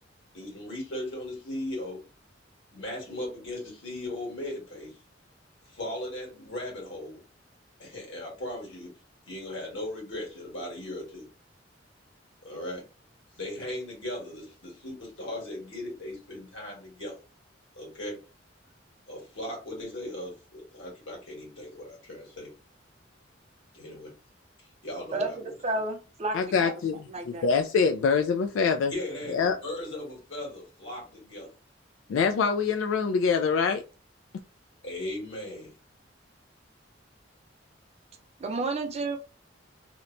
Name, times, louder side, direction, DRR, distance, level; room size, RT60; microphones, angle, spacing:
voice 1, 0.3-2.0 2.7-5.0 5.6-7.2 7.8-8.9 9.3-11.2 12.4-12.8 13.3-17.1 17.7-18.2 19.1-22.5 23.7-24.1 24.8-25.5 28.9-31.5 34.8-35.7, left 1 dB, 70° left, -2 dB, 1.5 m, -37 dB
voice 2, 25.1-26.7 27.1-27.5 38.4-39.2, right 2 dB, 35° right, 5 dB, 0.5 m, -31 dB
voice 3, 26.3-27.0 27.3-28.9 29.3-29.6 32.1-33.8, left 5 dB, 85° left, 6 dB, 0.3 m, -24 dB
2.9 x 2.1 x 2.5 m, 0.32 s
head